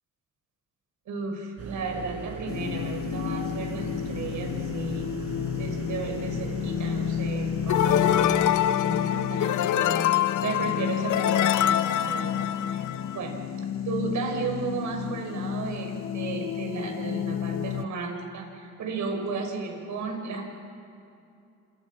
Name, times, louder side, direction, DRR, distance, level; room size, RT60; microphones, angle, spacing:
voice 1, 1.1-5.1 5.6-10.1 10.4-12.8 13.1-13.4 13.8-20.5, right 4 dB, 75° right, 3 dB, 6.3 m, -34 dB
room tone kitchen fridge Casgrain, 1.6-8.5, right 4 dB, 55° right, 5.4 m, -38 dB
sound 1, 2.5-17.9, left 9 dB, 45° left, 0.7 m, -31 dB
sound 2, 7.7-13.2, left 11 dB, 75° left, 0.9 m, -25 dB
29.5 x 27.5 x 6.0 m, 2.5 s
cardioid pair, 90°, 30 cm